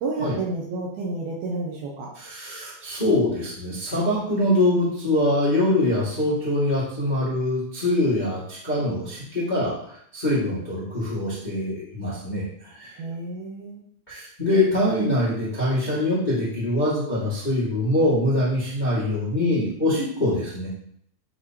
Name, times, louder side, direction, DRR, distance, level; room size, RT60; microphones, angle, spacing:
voice 1, 0.0-2.1 13.0-13.8, right 3 dB, 75° right, -1 dB, 2.5 m, -30 dB
voice 2, 2.1-12.9 14.1-20.7, left 1 dB, 20° left, -9 dB, 1.2 m, -24 dB
9.9 x 3.9 x 3.0 m, 0.66 s
omnidirectional pair, 4.9 m